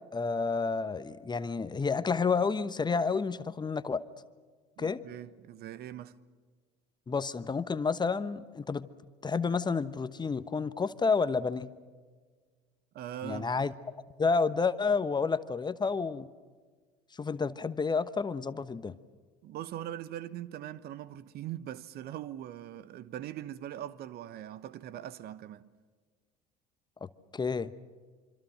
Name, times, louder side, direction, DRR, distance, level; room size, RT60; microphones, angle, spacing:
voice 1, 0.1-4.0 4.8-5.0 7.1-8.9 9.2-11.7 13.2-13.7 14.2-16.3 17.2-18.9 27.0-27.7, left 4 dB, 20° left, 1.1 m, -30 dB
voice 2, 4.8-6.2 12.9-13.5 19.4-25.7, right 12 dB, 50° right, 1.1 m, -41 dB
26.0 x 25.5 x 6.4 m
hypercardioid pair, 70°, 20 cm